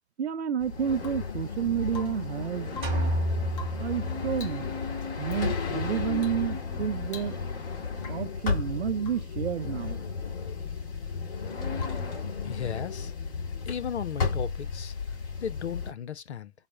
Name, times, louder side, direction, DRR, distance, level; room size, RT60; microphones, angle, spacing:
voice 1, 0.2-2.8 3.8-4.7 5.2-7.4 8.1-10.0, right 8 dB, 70° right, 0.5 m, -30 dB
sound 1, 0.6-15.9, left 5 dB, 55° left, 2.3 m, -33 dB
Rain / Water tap faucet / Drip, 1.0-1.4 1.9-2.4 2.7-3.1 3.5-4.0 4.3-4.7 5.2-5.4 6.2-6.5 6.7-6.8 7.1-7.6 8.0-8.4 9.0-9.3 11.8-12.2 14.1-14.2, left 5 dB, 35° left, 1.0 m, -47 dB
sound 2, 2.8-4.7, right 1 dB, 15° right, 0.9 m, -30 dB
voice 2, 12.4-13.1 13.4-16.5, left 8 dB, 75° left, 0.6 m, -36 dB
4.0 x 2.1 x 3.3 m
figure-of-eight pair, 120°, 34 cm